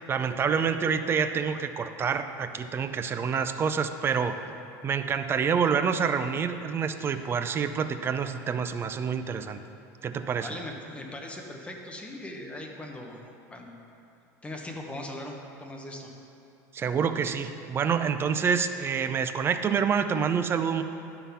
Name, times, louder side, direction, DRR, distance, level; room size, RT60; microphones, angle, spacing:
voice 1, 0.1-4.4 4.8-9.6 10.0-10.5 16.7-20.8, right 6 dB, 25° right, 9 dB, 0.4 m, -27 dB
voice 2, 10.4-13.2 13.5-13.8 14.4-16.1, left 1 dB, 15° left, 1 dB, 1.0 m, -39 dB
11.0 x 3.8 x 5.7 m, 2.7 s
supercardioid pair, 120°, 9 cm